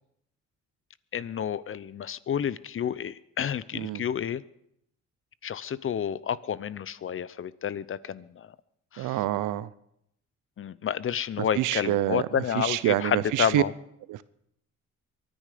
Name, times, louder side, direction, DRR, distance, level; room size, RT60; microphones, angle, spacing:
voice 1, 1.1-4.4 5.4-8.5 8.9-9.1 10.6-13.7, left 8 dB, 45° left, 0.7 m, -30 dB
voice 2, 3.7-4.0 9.0-9.7 11.4-13.6 14.1-14.2, right 14 dB, 85° right, 0.8 m, -27 dB
23.0 x 10.5 x 5.1 m
cardioid pair, 90°, 30 cm